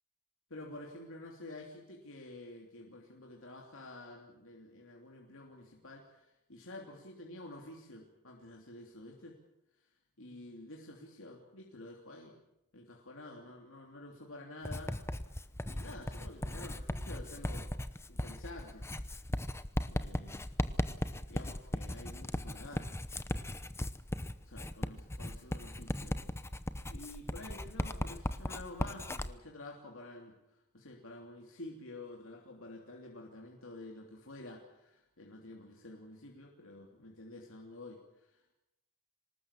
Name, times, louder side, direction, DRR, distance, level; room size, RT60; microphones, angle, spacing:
voice 1, 0.5-9.4 10.2-12.4 12.7-15.2 15.6-17.7 18.1-18.9 19.9-20.5 21.3-22.9 24.5-26.4 26.9-30.4 30.7-38.0, left 2 dB, 60° left, 0 dB, 3.0 m, -49 dB
Writing, 14.7-29.3, left 1 dB, 10° left, 0.8 m, -37 dB
25.0 x 19.5 x 7.3 m, 0.89 s
head